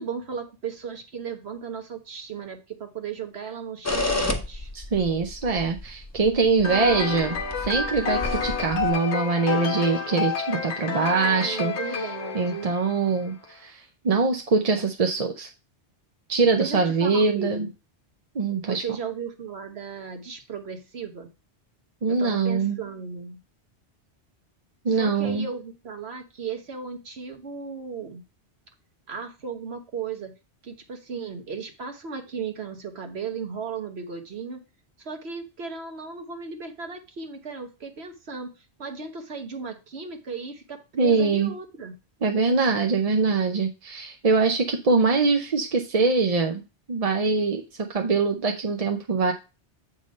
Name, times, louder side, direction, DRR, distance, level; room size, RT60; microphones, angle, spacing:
voice 1, 0.0-4.7 11.4-12.7 16.5-17.7 18.6-21.3 22.1-23.4 24.9-28.2 29.1-30.3 30.6-34.6 35.0-38.5 38.8-41.9, right 6 dB, 70° right, 5 dB, 1.4 m, -35 dB
sound 1, 3.8-8.9, left 2 dB, 15° left, 0.8 m, -31 dB
voice 2, 4.7-11.7 12.3-15.5 16.3-17.7 18.3-18.8 22.0-22.8 24.8-25.4 41.0-41.5 42.2-46.6 46.9-49.3, right 4 dB, 40° right, 4 dB, 0.6 m, -23 dB
sound 2, 6.6-13.3, left 5 dB, 80° left, 1.2 m, -30 dB
7.6 x 3.7 x 5.2 m, 0.29 s
omnidirectional pair, 1.1 m